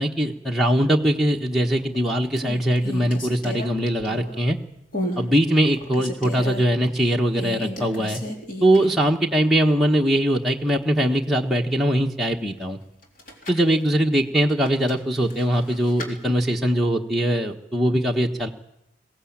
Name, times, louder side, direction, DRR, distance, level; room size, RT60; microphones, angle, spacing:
voice 1, 0.0-4.6 5.2-8.2 8.6-12.8 13.5-18.5, equal, ahead, -2 dB, 1.3 m, -21 dB
sound 1, 1.6-2.0 2.3-4.5 4.9-5.3 5.6-6.7 7.3-9.1 9.4-9.5 13.0-13.7 14.6-16.1, equal, 45° left, 3.9 m, -33 dB
22.5 x 17.0 x 8.7 m, 0.88 s
head